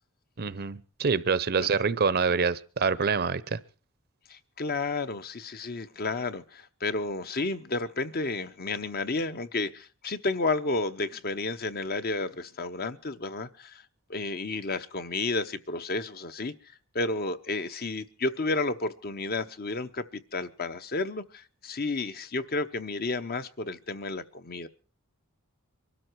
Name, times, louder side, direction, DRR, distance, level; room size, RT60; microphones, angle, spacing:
voice 1, 0.4-3.6, right 5 dB, 45° right, 0.7 m, -26 dB
voice 2, 4.3-13.8 14.1-24.7, left 3 dB, 45° left, 0.9 m, -32 dB
23.5 x 13.0 x 4.6 m
head